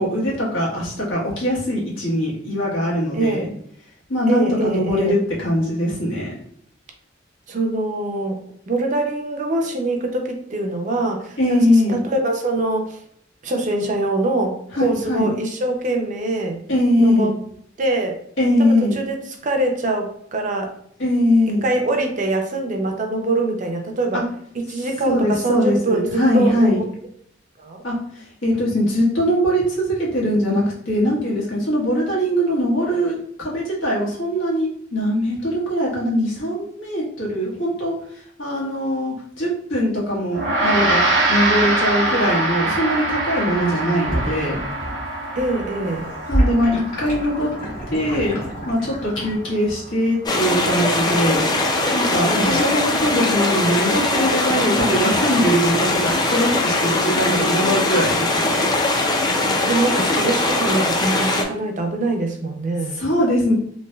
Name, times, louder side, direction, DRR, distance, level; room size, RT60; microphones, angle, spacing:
voice 1, 0.0-3.4 4.1-6.3 11.4-12.0 14.8-15.3 16.7-17.3 18.4-19.0 21.0-21.6 24.1-24.2 25.1-26.8 27.8-28.0 28.4-37.9 38.4-41.0 41.3-44.6 46.3-47.5 47.9-48.3 48.6-51.5 51.9-58.6 63.0-63.5, equal, 90° left, -5 dB, 1.4 m, -21 dB
voice 2, 3.1-3.5 4.3-5.1 7.5-8.4 8.7-13.0 13.4-16.6 17.0-17.3 17.8-18.1 18.6-20.7 21.6-24.2 24.7-26.8 27.6-27.8 45.4-46.1 52.2-52.6 59.5-63.0, right 2 dB, 40° right, 3 dB, 0.5 m, -23 dB
Gong, 40.3-49.9, right 2 dB, 70° right, 0.7 m, -24 dB
sound 1, 43.5-45.1 45.3-49.4, right 1 dB, 45° left, 1.4 m, -27 dB
sound 2, 50.2-61.4, left 2 dB, 20° left, 0.4 m, -21 dB
3.1 x 2.7 x 2.3 m, 0.66 s
head